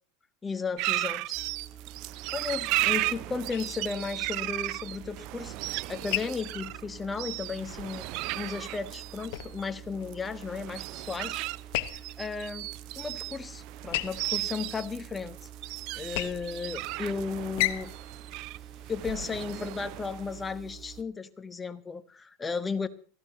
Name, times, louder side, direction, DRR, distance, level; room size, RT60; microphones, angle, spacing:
voice 1, 0.4-1.3 2.3-11.4 11.9-12.7 13.0-15.4 16.0-17.9 18.9-22.9, left 5 dB, 20° left, 11 dB, 1.4 m, -35 dB
sound 1, 0.8-20.5, right 19 dB, 55° right, 0.6 m, -35 dB
sound 2, 1.3-21.0, right 10 dB, 20° right, 1.2 m, -48 dB
sound 3, 3.5-19.6, left 16 dB, 65° left, 1.1 m, -39 dB
18.5 x 15.0 x 4.0 m, 0.43 s
hypercardioid pair, 95°, 0 cm